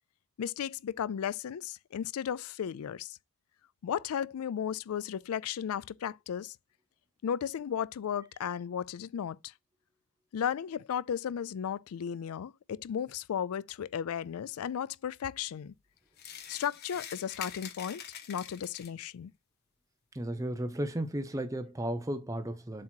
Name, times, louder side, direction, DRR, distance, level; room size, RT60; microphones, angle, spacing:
voice 1, 0.4-3.2 3.8-6.6 7.2-9.5 10.3-15.7 16.5-18.0 18.3-19.3, left 8 dB, 75° left, 0.4 m, -35 dB
sound 1, 16.2-19.1, left 8 dB, 45° left, 1.0 m, -45 dB
voice 2, 20.1-22.8, right 1 dB, 15° right, 0.6 m, -34 dB
7.4 x 2.9 x 4.4 m
head